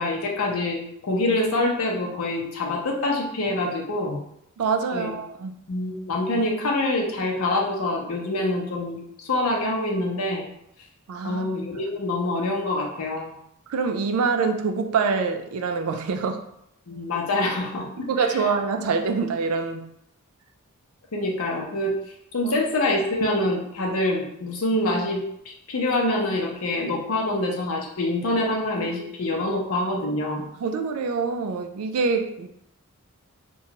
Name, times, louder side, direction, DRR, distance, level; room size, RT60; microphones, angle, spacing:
voice 1, 0.0-4.2 4.9-5.1 5.7-10.5 11.2-13.3 16.9-18.4 21.1-21.9 22.3-30.5, left 2 dB, 70° left, 0 dB, 0.6 m, -26 dB
voice 2, 4.6-5.5 11.1-11.5 13.7-16.4 18.1-19.9 22.4-22.5 30.6-32.5, right 5 dB, 75° right, 6 dB, 0.3 m, -25 dB
2.9 x 2.2 x 2.8 m, 0.76 s
head